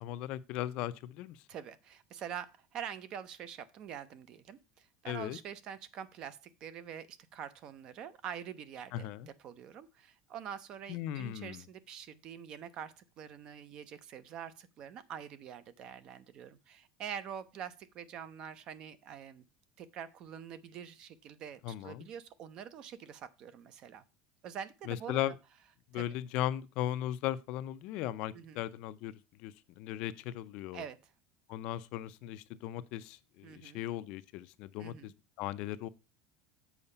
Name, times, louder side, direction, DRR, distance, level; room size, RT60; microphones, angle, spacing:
voice 1, 0.0-1.4 5.1-5.4 8.9-9.3 10.9-11.6 21.6-22.1 24.9-25.3 25.9-30.8 31.5-35.1 35.4-35.9, left 13 dB, 45° left, 0.4 m, -37 dB
voice 2, 1.5-19.4 19.8-24.0 24.4-25.2 25.9-26.1 28.3-28.6 30.7-31.1 33.4-33.8 34.8-35.1, right 8 dB, 35° right, 0.5 m, -45 dB
7.1 x 4.8 x 5.4 m
cardioid pair, 175°, 2 cm